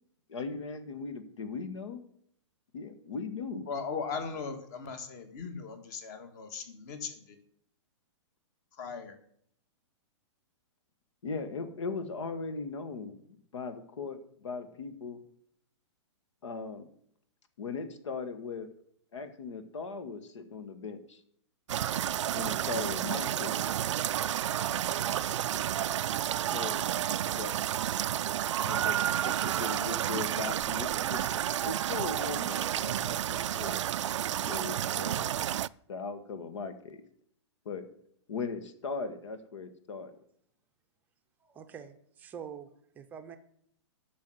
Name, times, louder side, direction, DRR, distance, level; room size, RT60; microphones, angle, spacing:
voice 1, 0.3-2.0 2.7-3.7 11.2-15.2 16.4-16.9 17.6-18.7 19.1-21.2 22.3-23.6 26.5-26.9 27.4-27.6 28.6-29.0 29.2-31.3 31.6-33.8 34.4-35.4 35.9-37.0 37.6-37.9 38.3-40.1, left 4 dB, 75° left, 11 dB, 1.8 m, -38 dB
voice 2, 3.7-7.4 8.7-9.1, left 5 dB, 35° left, 8 dB, 1.8 m, -38 dB
sound 1, 21.7-35.7, right 11 dB, 75° right, 0.4 m, -31 dB
voice 3, 41.4-43.4, right 8 dB, 10° right, 7 dB, 0.7 m, -46 dB
10.5 x 6.4 x 8.0 m, 0.67 s
hypercardioid pair, 165°, 16 cm